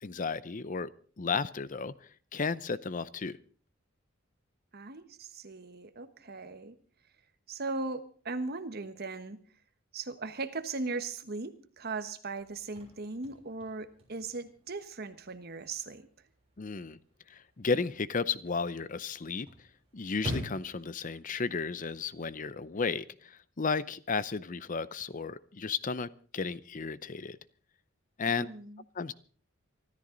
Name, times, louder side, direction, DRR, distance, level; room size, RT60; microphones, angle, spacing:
voice 1, 0.0-0.9 1.2-1.9 2.3-3.4 16.6-17.0 17.3-19.5 19.9-27.4 28.2-28.5 28.9-29.1, left 5 dB, 40° left, 17 dB, 0.6 m, -33 dB
voice 2, 4.7-6.7 7.5-9.4 9.9-16.1 28.4-28.8, right 3 dB, 50° right, 10 dB, 1.3 m, -38 dB
Chirp tweet / Car / Slam, 12.4-22.4, equal, 30° right, 6.9 m, -47 dB
24.5 x 13.5 x 3.9 m, 0.43 s
head